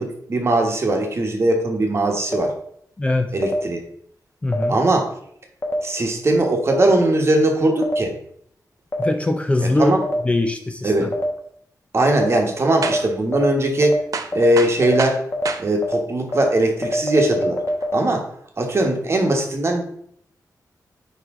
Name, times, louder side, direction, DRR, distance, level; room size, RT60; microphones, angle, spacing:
voice 1, 0.0-2.5 3.3-3.8 4.7-5.1 5.8-8.1 9.8-10.0 10.8-11.1 11.9-14.0 14.3-15.2 15.6-17.6 17.9-18.2 18.6-19.8, right 1 dB, 40° right, 2 dB, 1.2 m, -19 dB
sound 1, 2.3-2.4 3.4-3.5 4.5-4.6 5.6-5.7 6.7-6.8 7.8-7.9 8.9-9.0 10.0-10.1 11.1-11.2 12.2-12.3 12.8-12.9 13.3-13.4 13.8-13.9 14.3-14.4 14.8-14.9 15.3-15.4 15.8-15.9 16.3-16.4 16.8-17.9, left 2 dB, 35° left, 1.3 m, -26 dB
voice 2, 3.0-3.3 4.4-4.8 9.0-10.0 10.2-11.1, left 2 dB, 20° left, 6 dB, 0.5 m, -21 dB
sound 2, 12.8-13.2 13.6-13.7 14.1-15.7 16.3-16.4 17.7-17.9, right 5 dB, 60° right, 0.6 m, -29 dB
9.5 x 3.2 x 3.7 m, 0.67 s
wide cardioid pair, 125°, 7 cm